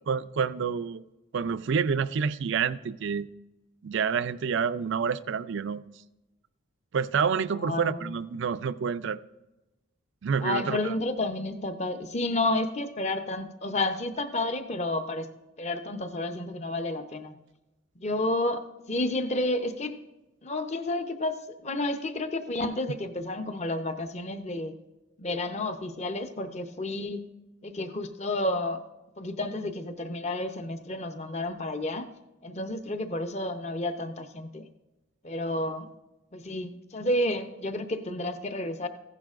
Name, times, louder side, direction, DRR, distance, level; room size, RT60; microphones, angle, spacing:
voice 1, 0.1-1.0 1.3-3.3 3.8-5.8 6.9-9.2 10.2-10.9, right 6 dB, 55° right, 14 dB, 0.4 m, -28 dB
voice 2, 7.6-8.0 10.4-15.3 15.6-17.3 18.0-20.0 20.4-24.7 25.2-27.2 27.6-28.8 29.2-32.1 32.4-34.7 35.2-35.9 36.3-38.9, left 1 dB, 30° left, 8 dB, 0.7 m, -31 dB
15.0 x 10.5 x 2.5 m, 1.0 s
head